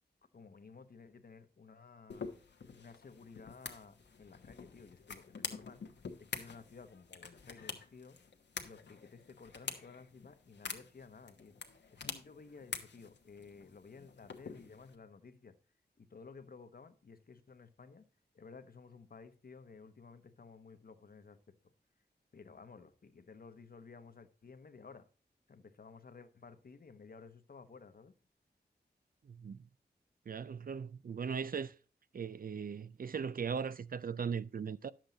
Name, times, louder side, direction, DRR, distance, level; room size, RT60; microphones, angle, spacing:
voice 1, 0.3-2.3 2.7-5.8 6.2-8.2 8.6-11.6 11.9-15.6 16.0-18.0 18.3-21.7 22.3-25.1 25.5-28.1, left 4 dB, 60° left, 0.9 m, -55 dB
sound 1, 2.1-14.9, left 5 dB, 85° left, 1.1 m, -47 dB
voice 2, 29.3-29.6 30.3-31.7 32.1-34.9, right 6 dB, 55° right, 0.4 m, -38 dB
10.5 x 7.5 x 3.9 m
wide cardioid pair, 80°, 18 cm